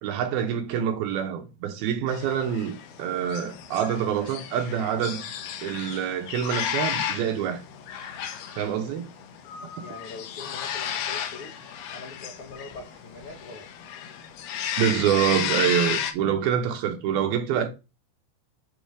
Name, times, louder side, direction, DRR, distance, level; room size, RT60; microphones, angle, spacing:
voice 1, 0.0-5.2 5.6-7.6 8.6-9.1 14.8-17.7, right 9 dB, 85° right, 2.9 m, -26 dB
sound 1, 2.1-16.1, left 9 dB, 90° left, 2.9 m, -33 dB
voice 2, 9.8-11.6 11.9-13.6, left 3 dB, 70° left, 1.3 m, -42 dB
7.9 x 3.2 x 5.0 m
omnidirectional pair, 4.4 m